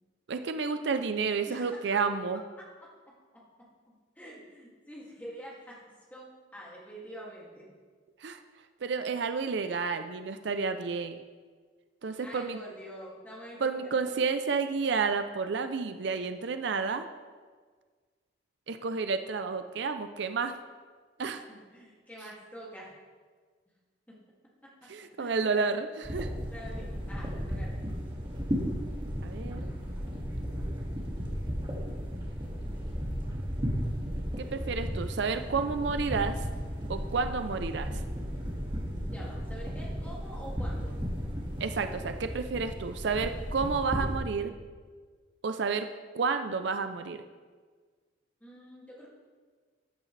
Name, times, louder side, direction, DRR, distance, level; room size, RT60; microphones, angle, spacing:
voice 1, 0.3-2.4 8.2-8.4 8.8-11.2 12.0-12.6 13.6-17.1 18.7-20.5 21.2-21.4 24.9-25.9 26.1-26.3 29.2-29.7 34.4-36.5 36.9-38.0 41.6-44.5 45.4-45.9 46.1-47.2, right 5 dB, 65° right, 9 dB, 0.5 m, -30 dB
voice 2, 1.5-1.8 2.3-2.9 3.3-3.4 3.9-5.8 6.1-7.7 12.2-13.9 21.5-22.9 24.1-24.2 24.6-24.7 25.2-25.7 26.5-27.8 34.4-34.6 39.1-41.0 48.4-49.1, equal, 10° left, -5 dB, 2.3 m, -46 dB
sound 1, 26.0-44.2, equal, 25° right, 2.0 m, -35 dB
14.0 x 9.0 x 3.3 m, 1.5 s
head